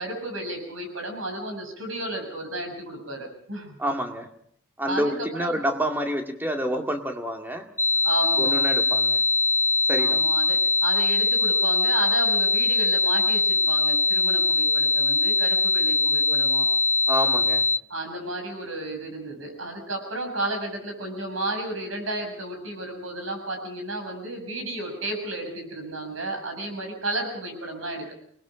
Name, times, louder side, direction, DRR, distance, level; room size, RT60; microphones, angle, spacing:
voice 1, 0.0-3.8 4.9-5.6 8.0-8.5 10.0-16.7 17.9-28.1, right 2 dB, 80° right, 4 dB, 6.8 m, -33 dB
voice 2, 3.8-4.3 4.8-7.7 8.4-9.2 9.9-10.2 17.1-17.7, equal, 10° right, 4 dB, 2.0 m, -28 dB
sound 1, 7.8-17.8, left 3 dB, 15° left, 1.0 m, -22 dB
27.5 x 20.5 x 5.0 m, 0.65 s
head